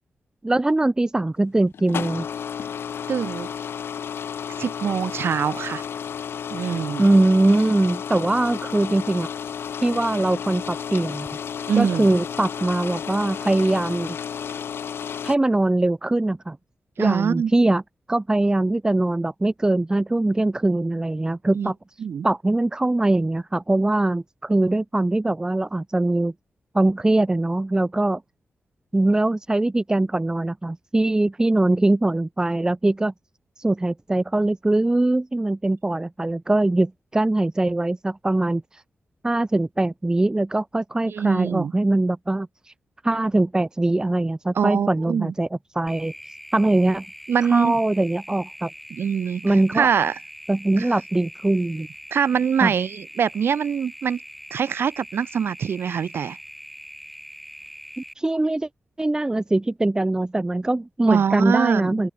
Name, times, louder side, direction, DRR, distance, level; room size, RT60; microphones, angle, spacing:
voice 1, 0.4-2.3 7.0-9.3 9.8-11.3 11.7-14.2 15.2-16.6 17.0-17.8 18.1-21.7 22.2-26.3 26.7-28.2 28.9-33.1 33.6-38.8 39.2-42.7 43.0-45.5 45.7-46.1 46.5-47.0 47.5-48.7 49.4-49.9 50.5-51.9 52.6-52.7 58.0-58.7 59.0-62.1, right 2 dB, 20° right, 1.4 m, -22 dB
sound 1, 1.7-15.4, left 7 dB, 85° left, 3.6 m, -32 dB
voice 2, 3.1-3.5 4.6-5.8 6.5-7.1 11.7-12.1 17.0-17.5 21.5-21.7 22.0-22.3 41.1-41.7 44.5-45.3 47.3-47.7 48.9-50.2 50.8-50.9 52.1-54.2 54.5-56.4 61.1-62.1, right 7 dB, 80° right, 2.3 m, -24 dB
sound 2, 45.9-58.1, equal, ahead, 5.1 m, -42 dB
open air
wide cardioid pair, 95°, 4 cm